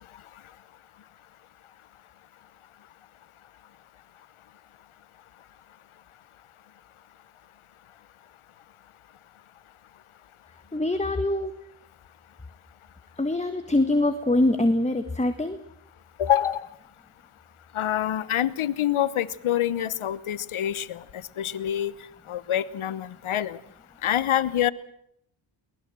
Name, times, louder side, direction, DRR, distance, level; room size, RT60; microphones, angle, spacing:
voice 1, 10.7-11.5 13.2-15.6, left 1 dB, 15° left, 8 dB, 1.6 m, -24 dB
voice 2, 16.2-16.7 17.7-21.9 22.3-23.6 24.0-24.7, left 11 dB, 80° left, 17 dB, 1.2 m, -26 dB
23.0 x 20.0 x 7.7 m, 0.71 s
cardioid pair, 65°, 49 cm